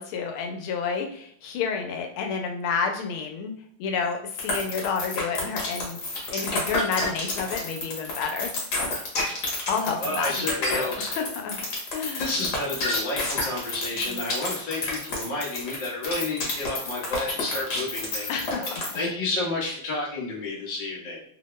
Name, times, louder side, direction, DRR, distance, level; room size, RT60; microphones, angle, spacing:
voice 1, 0.0-3.5 3.8-6.0 6.3-8.5 9.7-11.5 11.9-12.3 14.1-14.2 18.3-19.0, left 5 dB, 80° left, 4 dB, 1.4 m, -30 dB
sound 1, 4.4-19.0, left 2 dB, 60° left, 1.4 m, -29 dB
voice 2, 10.0-11.3 12.2-21.2, left 2 dB, 35° left, -6 dB, 0.7 m, -31 dB
3.5 x 2.1 x 3.0 m, 0.66 s
omnidirectional pair, 2.3 m